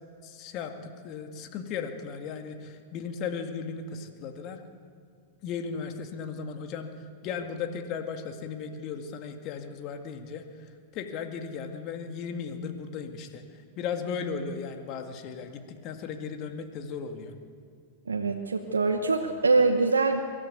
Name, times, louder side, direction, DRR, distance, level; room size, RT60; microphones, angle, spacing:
voice 1, 0.2-4.6 5.4-6.9 7.2-10.5 10.9-17.3, left 6 dB, 45° left, 6 dB, 2.1 m, -36 dB
voice 2, 18.1-20.2, right 3 dB, 85° right, 5 dB, 1.0 m, -24 dB
23.0 x 14.0 x 8.3 m, 2.1 s
hypercardioid pair, 100°, 0 cm